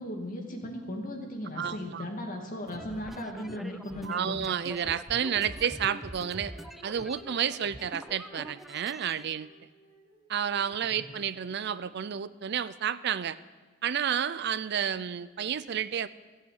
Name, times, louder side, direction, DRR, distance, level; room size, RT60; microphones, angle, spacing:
voice 1, 0.0-4.4 10.9-11.0, left 1 dB, 45° left, 1 dB, 2.5 m, -37 dB
voice 2, 1.6-2.0 4.0-6.5 6.8-9.5 10.3-13.4 13.8-16.1, right 8 dB, 60° right, 16 dB, 0.5 m, -31 dB
sound 1, 2.7-9.3, equal, ahead, 0.4 m, -45 dB
Female singing, 5.1-12.2, right 1 dB, 35° right, 4.2 m, -55 dB
16.5 x 8.0 x 8.7 m, 1.4 s
head